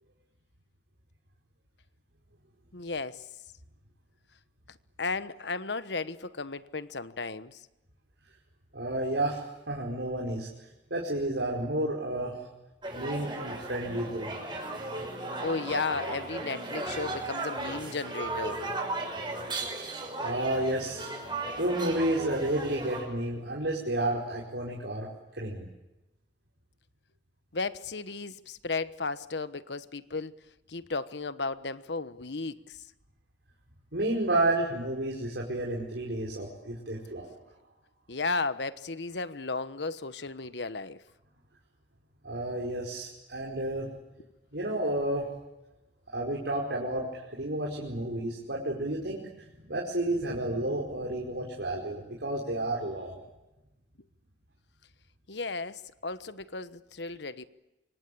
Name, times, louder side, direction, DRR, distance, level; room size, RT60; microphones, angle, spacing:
voice 1, 2.7-3.2 4.7-7.6 15.4-18.6 27.5-30.3 30.7-32.8 38.1-41.0 55.3-57.4, left 3 dB, 75° left, 1.2 m, -34 dB
voice 2, 8.7-10.5 10.9-12.4 12.9-14.3 20.2-21.1 21.6-25.1 25.4-25.7 33.9-37.3 42.2-43.9 44.5-45.3 46.1-49.3 49.7-53.2, right 1 dB, 75° right, 5.0 m, -31 dB
sound 1, 12.8-23.0, right 2 dB, 25° right, 6.0 m, -36 dB
26.5 x 24.5 x 8.5 m
head